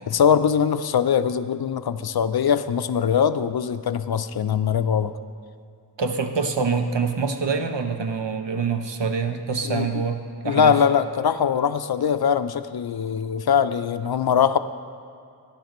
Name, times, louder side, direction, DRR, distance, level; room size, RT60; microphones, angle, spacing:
voice 1, 0.1-5.1 9.6-10.0 10.5-14.6, left 7 dB, 60° left, 12 dB, 0.5 m, -22 dB
voice 2, 6.0-10.8, right 5 dB, 75° right, 6 dB, 0.9 m, -25 dB
14.0 x 10.5 x 3.0 m, 2.4 s
wide cardioid pair, 45°, 43 cm